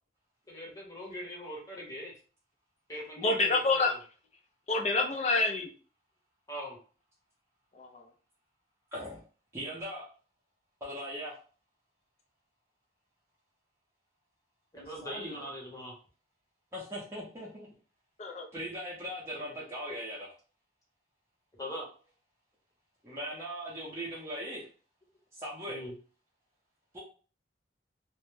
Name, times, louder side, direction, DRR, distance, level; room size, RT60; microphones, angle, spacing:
voice 1, 0.5-2.1 2.9-3.9 6.5-6.8 14.7-15.9 21.6-21.8 25.7-25.9, equal, 20° left, -2 dB, 0.8 m, -41 dB
voice 2, 3.2-3.9 4.7-5.7 7.7-8.0 18.2-18.5, left 3 dB, 35° left, 3 dB, 0.4 m, -27 dB
voice 3, 8.9-9.2 9.5-10.0 10.8-11.4 15.0-15.4 16.7-17.7 18.5-20.3 23.0-24.7 25.3-25.8 26.9-27.0, equal, 15° right, -6 dB, 0.6 m, -39 dB
2.1 x 2.0 x 3.1 m, 0.38 s
head